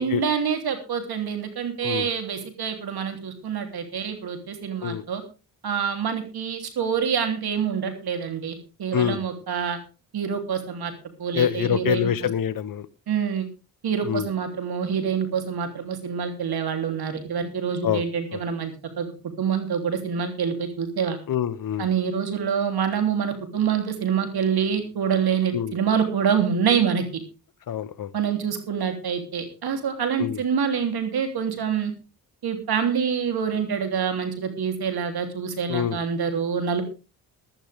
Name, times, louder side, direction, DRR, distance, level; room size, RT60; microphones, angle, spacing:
voice 1, 0.0-5.2 5.6-9.8 10.1-10.9 11.2-12.1 13.1-13.5 13.8-21.2 21.8-27.2 28.1-31.9 32.4-36.8, right 7 dB, 70° right, 6 dB, 3.3 m, -26 dB
voice 2, 11.3-12.9 14.1-14.3 17.8-18.0 21.3-21.8 25.5-25.7 27.7-28.1 30.2-30.4 35.7-36.0, left 9 dB, 60° left, 14 dB, 1.0 m, -25 dB
16.5 x 12.0 x 3.5 m, 0.31 s
cardioid pair, 60°, 39 cm